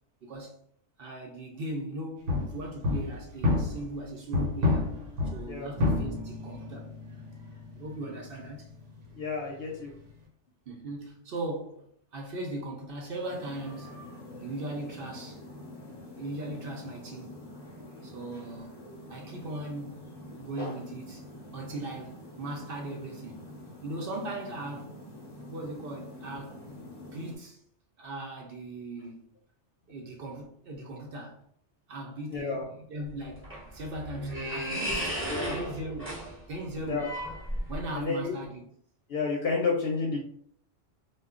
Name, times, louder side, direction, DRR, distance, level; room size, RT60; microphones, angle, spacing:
voice 1, 0.2-0.6 1.0-4.9 5.2-6.9 7.8-8.7 10.7-14.0 14.4-15.4 16.1-17.4 18.0-18.8 19.1-20.1 20.4-21.3 21.5-23.4 23.8-25.0 25.5-27.6 28.0-29.3 29.9-31.4 31.9-36.2 36.5-37.1 37.7-38.6, right 1 dB, 60° right, 0.7 m, -39 dB
sound 1, 2.3-4.0 4.3-10.1, left 3 dB, 80° right, 1.0 m, -31 dB
voice 2, 9.1-9.9 32.3-32.6 35.3-35.5 36.9-37.1 37.9-38.3 39.1-40.2, left 4 dB, 65° left, 0.8 m, -30 dB
sound 2, 13.3-27.3, left 1 dB, 30° left, 0.5 m, -46 dB
sound 3, 33.1-38.0, equal, 15° right, 0.6 m, -35 dB
2.2 x 2.1 x 3.5 m
omnidirectional pair, 1.2 m